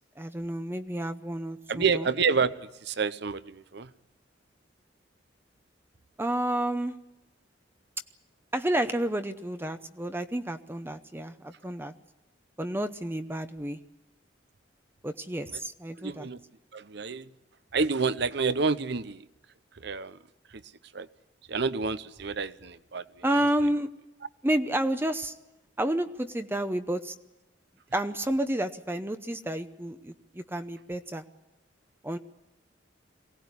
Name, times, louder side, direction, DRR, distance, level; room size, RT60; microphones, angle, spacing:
voice 1, 0.2-2.1 6.2-6.9 8.5-11.9 12.6-13.8 15.0-16.3 23.2-23.9 24.4-25.3 25.8-27.1 27.9-31.2 32.0-32.2, right 1 dB, 10° right, 0.8 m, -30 dB
voice 2, 1.7-3.9 15.5-15.6 16.0-16.4 16.7-17.3 17.7-19.3 19.7-20.2 20.5-20.6 20.9-21.1 21.5-23.2, right 5 dB, 60° right, 0.9 m, -29 dB
23.0 x 18.0 x 9.6 m
head